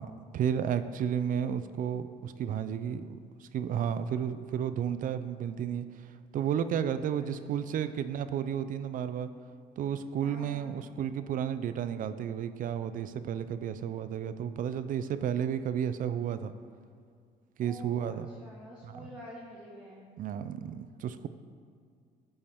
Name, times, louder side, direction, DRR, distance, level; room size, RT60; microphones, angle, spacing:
voice 1, 0.0-3.1 3.4-5.9 6.3-9.3 9.8-16.5 17.6-18.3 18.9-19.1 20.2-21.3, right 8 dB, 55° right, 12 dB, 0.5 m, -32 dB
voice 2, 10.2-10.9 17.6-20.1, equal, 5° right, -6 dB, 1.4 m, -48 dB
12.5 x 5.4 x 3.6 m, 2.1 s
cardioid pair, 110°, 17 cm